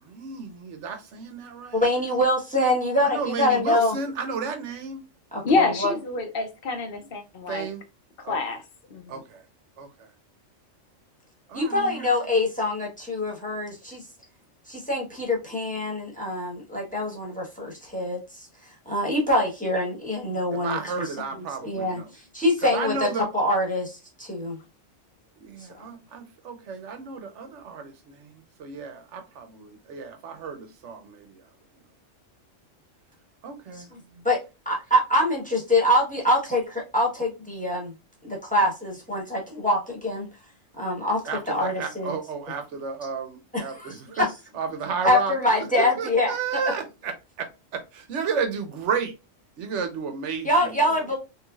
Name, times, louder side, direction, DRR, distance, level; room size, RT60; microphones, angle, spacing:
voice 1, 0.0-1.9 3.0-5.0 7.5-7.8 8.2-8.4 9.1-9.4 9.8-10.1 11.5-12.1 20.5-22.1 22.6-23.3 25.4-31.4 33.4-33.9 41.2-44.3 44.5-49.1 49.6-51.0, right 5 dB, 70° right, 1.0 m, -32 dB
voice 2, 1.7-3.9 5.3-5.9 11.5-14.0 14.7-18.5 18.9-20.8 21.6-23.1 23.3-24.6 33.7-34.0 34.2-34.4 34.6-37.9 38.2-40.3 40.8-41.2 41.5-42.1 43.5-44.2 45.0-46.3 50.4-51.2, left 1 dB, 5° left, 1.0 m, -24 dB
voice 3, 5.4-7.7 8.2-8.6 8.9-9.2, left 3 dB, 55° left, 0.8 m, -27 dB
3.2 x 3.1 x 2.3 m
omnidirectional pair, 1.3 m